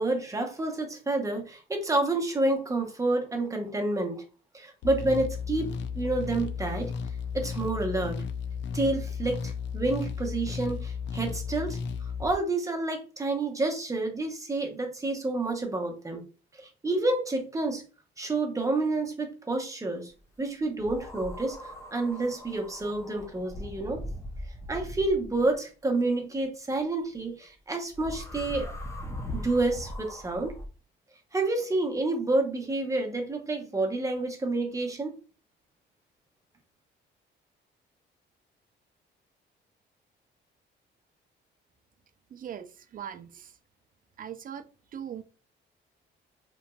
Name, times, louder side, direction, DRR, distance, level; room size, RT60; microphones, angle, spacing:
voice 1, 0.0-4.2 4.5-5.7 6.0-6.9 7.3-8.2 8.7-11.8 12.2-16.2 16.6-17.8 18.2-20.1 20.4-21.6 21.9-24.0 24.7-28.7 29.3-30.5 31.3-35.1, right 2 dB, 15° right, 0.8 m, -29 dB
sound 1, 4.8-12.4, left 6 dB, 65° left, 0.4 m, -34 dB
sound 2, 20.8-25.5 27.9-30.7, left 1 dB, 15° left, 0.6 m, -40 dB
voice 2, 42.3-43.6 44.2-44.7 44.9-45.2, right 9 dB, 45° right, 0.4 m, -40 dB
3.0 x 2.5 x 2.2 m
cardioid pair, 90°, 20 cm